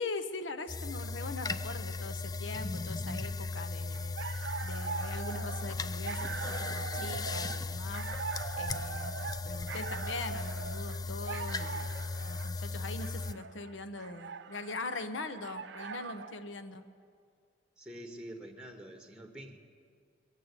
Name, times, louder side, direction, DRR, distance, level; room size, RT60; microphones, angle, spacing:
voice 1, 0.0-8.1 8.6-9.1 9.4-16.8, left 3 dB, 80° left, 9 dB, 0.9 m, -41 dB
sound 1, 0.7-13.3, left 3 dB, 20° left, 0.4 m, -37 dB
sound 2, 3.9-16.4, right 5 dB, 70° right, 0.6 m, -42 dB
voice 2, 17.8-19.6, right 1 dB, 5° right, 5 dB, 1.1 m, -46 dB
22.0 x 7.5 x 8.2 m, 2.2 s
head